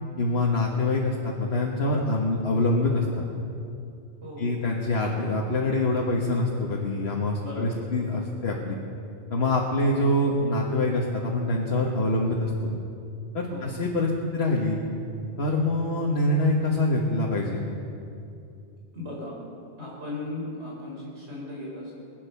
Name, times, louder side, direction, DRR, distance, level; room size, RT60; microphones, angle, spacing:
voice 1, 0.2-3.0 4.4-8.8 9.3-12.7 13.3-14.8 15.4-17.6, left 2 dB, 70° left, -2 dB, 1.7 m, -25 dB
voice 2, 4.2-4.5 7.4-7.8 9.8-10.1 13.5-13.7 18.9-19.3 19.8-21.9, left 2 dB, 90° right, -4 dB, 5.1 m, -37 dB
21.5 x 9.7 x 6.9 m, 2.6 s
omnidirectional pair, 1.1 m